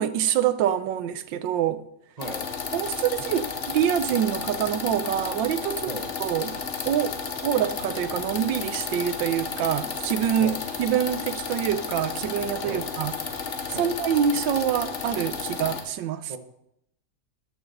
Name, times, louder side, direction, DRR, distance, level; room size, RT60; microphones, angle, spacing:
voice 1, 0.0-1.8 2.7-6.6 6.9-13.2 13.7-16.3, right 9 dB, 80° right, 1.4 m, -26 dB
sound 1, 2.2-15.8, left 5 dB, 45° left, 1.3 m, -32 dB
voice 2, 2.2-2.4 5.9-6.1 10.4-10.6 12.7-12.9 13.7-13.9 16.3-16.4, right 2 dB, 30° right, 0.8 m, -36 dB
11.0 x 6.6 x 6.6 m
omnidirectional pair, 2.0 m